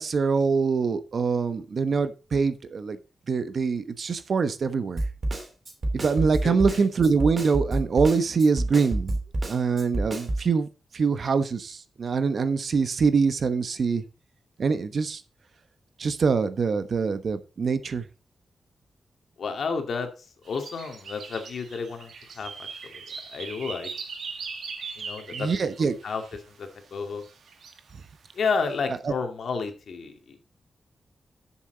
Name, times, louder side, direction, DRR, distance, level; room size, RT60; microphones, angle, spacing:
voice 1, 0.0-3.0 3.3-5.0 5.9-9.2 9.5-10.7 10.9-14.0 14.6-15.2 16.0-18.1 25.3-26.0 29.0-29.1, right 5 dB, 55° right, 11 dB, 1.1 m, -24 dB
Snare drum, 5.0-10.5, right 1 dB, 30° right, 2.9 m, -28 dB
voice 2, 6.4-6.8 19.4-20.1 20.5-22.7 22.9-23.0 23.3-23.9 25.0-25.5 26.0-26.2 26.6-27.2 28.4-30.4, left 5 dB, 70° left, 5 dB, 2.2 m, -31 dB
sound 1, 20.4-26.4 27.2-28.0 28.5-28.8, right 5 dB, 85° right, 2.1 m, -40 dB
13.0 x 7.2 x 4.0 m, 0.32 s
wide cardioid pair, 140°, 0 cm